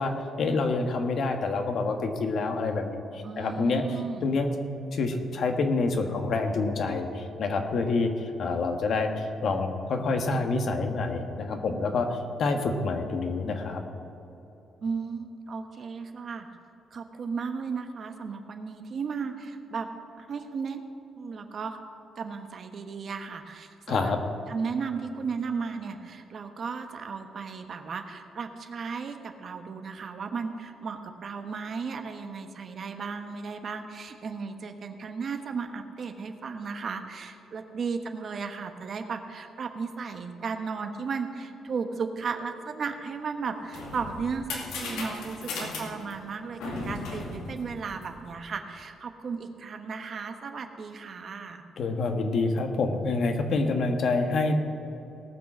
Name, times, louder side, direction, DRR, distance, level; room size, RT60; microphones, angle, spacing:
voice 1, 0.0-3.8 4.2-4.5 4.9-13.8 23.9-24.2 51.8-54.5, left 3 dB, 60° left, 5 dB, 1.4 m, -27 dB
voice 2, 3.2-4.3 14.8-16.5 16.9-19.9 20.2-20.8 21.2-21.8 22.2-24.1 24.5-51.6, right 5 dB, 50° right, 6 dB, 1.1 m, -35 dB
sound 1, 43.4-48.4, left 3 dB, 90° left, 2.1 m, -37 dB
18.5 x 6.2 x 6.2 m, 3.0 s
cardioid pair, 90°, 0 cm